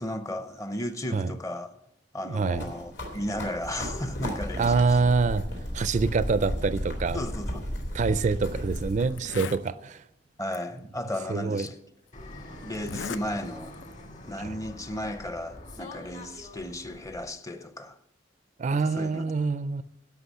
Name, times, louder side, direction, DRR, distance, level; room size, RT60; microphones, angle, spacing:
voice 1, 0.0-1.7 2.1-5.1 7.1-7.7 10.4-11.8 12.6-13.7 14.3-18.0 18.7-19.3, left 1 dB, 20° left, 0.6 m, -35 dB
voice 2, 2.2-2.6 4.6-5.4 5.7-7.2 7.9-10.0 11.3-11.7 14.4-14.6 18.6-19.8, right 4 dB, 40° right, 0.4 m, -25 dB
sound 1, 2.5-9.1, equal, 70° left, 2.7 m, -34 dB
Zipper (clothing), 8.1-8.3 8.8-8.9 9.1-9.7 10.5-10.6 11.6-11.7 12.7-13.2 13.6-13.9, left 6 dB, 90° left, 0.5 m, -37 dB
Fixed-wing aircraft airplane, 12.1-17.3, left 1 dB, 45° left, 1.8 m, -45 dB
11.5 x 6.0 x 8.2 m
head